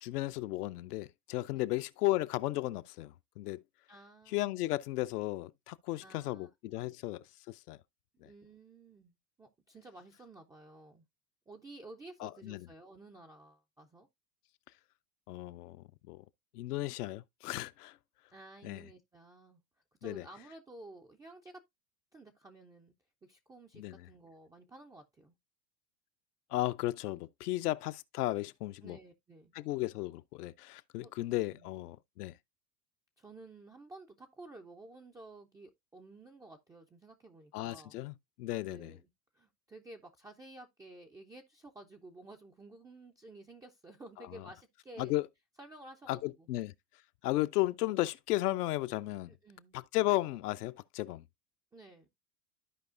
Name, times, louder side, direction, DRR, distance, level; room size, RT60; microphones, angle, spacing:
voice 1, 0.0-3.6 4.3-7.8 8.2-8.3 12.2-12.7 15.3-16.2 16.5-18.0 18.6-18.8 20.0-20.2 23.8-24.1 26.5-29.0 29.5-32.3 37.5-38.9 44.4-44.5 45.0-45.2 46.1-46.7 47.2-49.3 49.7-51.2, left 17 dB, 65° left, 0.6 m, -35 dB
voice 2, 3.9-4.5 6.0-6.5 6.8-6.9 8.1-11.0 11.5-14.1 18.3-19.6 20.0-21.6 22.1-22.9 23.2-25.3 27.6-27.7 28.8-29.5 31.0-31.1 31.5-31.7 33.2-38.0 38.6-39.1 39.3-45.1 45.6-46.5 49.3-49.8 51.7-52.1, right 2 dB, 10° right, 0.3 m, -53 dB
13.0 x 4.7 x 2.5 m
hypercardioid pair, 95°, 50 cm